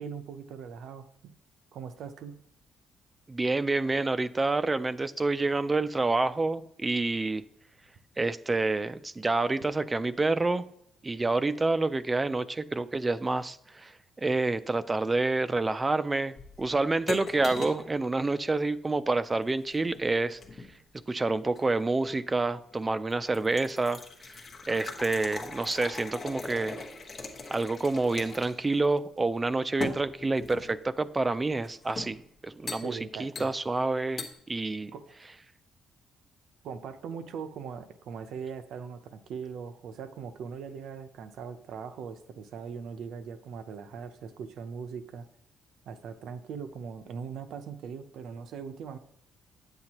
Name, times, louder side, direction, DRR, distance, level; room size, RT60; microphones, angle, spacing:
voice 1, 0.0-1.3 1.7-2.4 32.8-33.5 34.9-35.1 36.6-45.3 45.9-49.0, right 6 dB, 70° right, 9 dB, 0.6 m, -40 dB
voice 2, 3.3-7.4 8.2-10.7 11.0-20.4 21.1-24.0 24.7-26.8 27.5-34.9, right 3 dB, 15° right, 13 dB, 0.3 m, -28 dB
sound 1, 16.4-17.9 19.4-20.8 21.6-22.2 22.7-22.8 23.1-28.7 29.0-29.1 29.8-30.8 31.6-32.2 32.7-32.9 33.4-33.8 34.2-34.3, left 3 dB, 30° left, 1.2 m, -40 dB
9.5 x 7.9 x 2.9 m, 0.75 s
cardioid pair, 150°, 0 cm